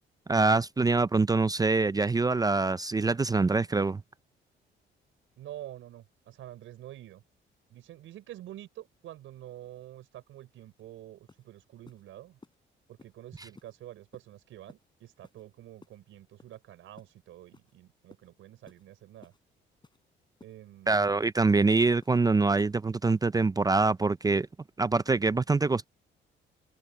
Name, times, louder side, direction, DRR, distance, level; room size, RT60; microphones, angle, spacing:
voice 1, 0.3-4.0 20.9-24.5 24.8-25.9, right 3 dB, 20° right, 0.5 m, -24 dB
voice 2, 5.4-7.2 7.7-12.4 12.9-19.3 20.4-21.0, right 13 dB, 85° right, 5.7 m, -47 dB
sound 1, 10.8-10.9 11.3-11.4 11.9-12.0 12.4-12.6 13.0-13.1 13.6-13.7 14.1-14.3 14.7-14.8 15.2-15.4 15.8-16.0 16.4-16.6 17.0-17.1 17.5-17.7 18.1-18.3 18.7-18.8 19.2-19.4 19.8-20.0 20.4-20.5 20.9-21.1 21.5-21.6 22.0-22.2 22.6-22.8 23.1-23.3, left 3 dB, 25° left, 5.6 m, -56 dB
cardioid pair, 90°, 20 cm